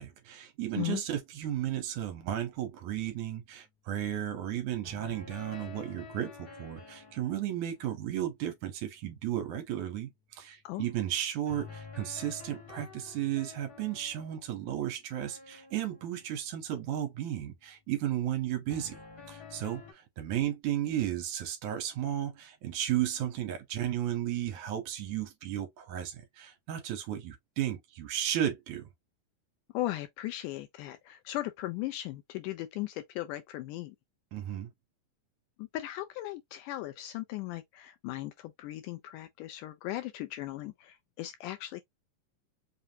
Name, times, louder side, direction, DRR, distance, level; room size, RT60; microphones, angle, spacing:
voice 1, 0.0-19.0 19.3-28.8 34.3-34.7, right 11 dB, 70° right, 2.1 m, -34 dB
sound 1, 2.6-2.7 4.8-9.0 11.5-17.0 18.7-19.9, left 5 dB, 45° left, 1.5 m, -50 dB
voice 2, 29.7-34.0 35.6-41.8, left 16 dB, 80° left, 2.0 m, -37 dB
5.6 x 2.5 x 2.7 m
omnidirectional pair, 4.0 m